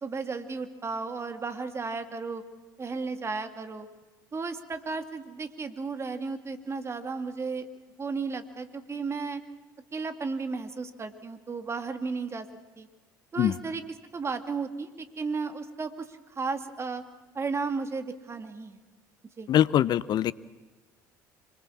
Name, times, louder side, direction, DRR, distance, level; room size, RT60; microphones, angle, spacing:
voice 1, 0.0-2.4 2.8-3.9 4.3-7.7 8.0-9.4 9.9-12.5 12.8-12.9 13.3-13.8 14.1-17.0 17.3-18.8 19.4-19.5, right 4 dB, 25° right, 8 dB, 2.3 m, -34 dB
voice 2, 19.5-20.3, left 11 dB, 45° left, 19 dB, 0.8 m, -23 dB
25.5 x 21.5 x 7.2 m, 1.3 s
hypercardioid pair, 65°, 10 cm